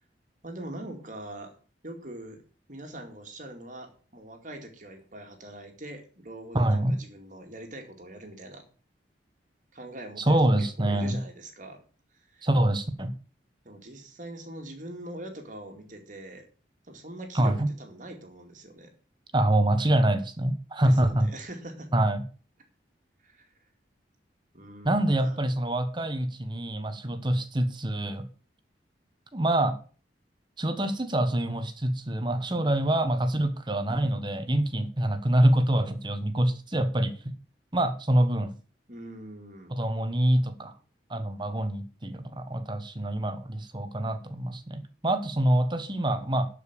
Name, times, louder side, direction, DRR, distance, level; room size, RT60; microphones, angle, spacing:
voice 1, 0.4-1.5 1.8-2.4 2.7-8.6 9.7-11.8 12.3-12.5 13.6-16.5 16.9-18.9 20.8-21.9 23.2-23.5 24.5-25.4 38.9-39.8, right 1 dB, 45° right, 4 dB, 2.3 m, -43 dB
voice 2, 6.5-7.0 10.2-11.2 12.4-13.1 17.3-17.7 19.3-21.3 21.9-22.2 24.8-28.3 29.3-29.8 30.6-37.3 37.7-38.5 39.7-40.7 41.1-46.5, right 1 dB, 25° right, 9 dB, 1.1 m, -25 dB
12.0 x 5.2 x 6.8 m, 0.39 s
head